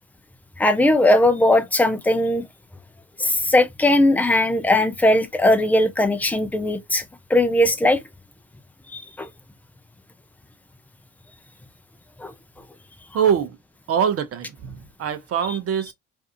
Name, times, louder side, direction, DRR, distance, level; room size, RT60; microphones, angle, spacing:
voice 1, 0.6-2.4 3.2-7.0 7.3-8.0 8.9-9.3 12.2-12.3, left 1 dB, 5° left, 0.4 m, -19 dB
voice 2, 13.1-13.6 13.9-15.9, right 8 dB, 40° right, 0.7 m, -23 dB
2.6 x 2.4 x 2.6 m
hypercardioid pair, 70°, 38 cm